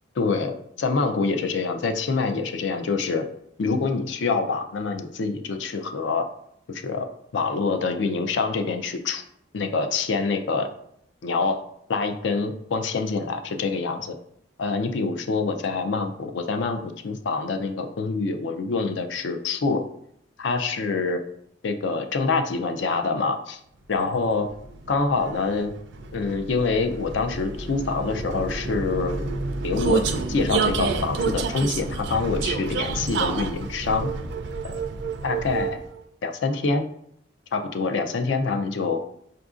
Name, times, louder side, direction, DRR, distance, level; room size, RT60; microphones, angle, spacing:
voice 1, 0.2-3.3 3.6-6.3 6.7-7.1 7.3-9.2 9.5-10.7 11.2-11.6 11.9-14.2 14.6-19.8 20.4-21.2 21.6-23.6 23.9-24.5 24.9-25.7 26.1-29.1 29.6-30.0 30.3-34.1 34.6-34.7 35.2-35.8 36.2-36.8 37.5-39.0, left 4 dB, 65° left, 6 dB, 0.4 m, -26 dB
Vehicle, 24.1-36.0, right 4 dB, 60° right, 0.4 m, -29 dB
5.6 x 2.5 x 2.4 m, 0.72 s
head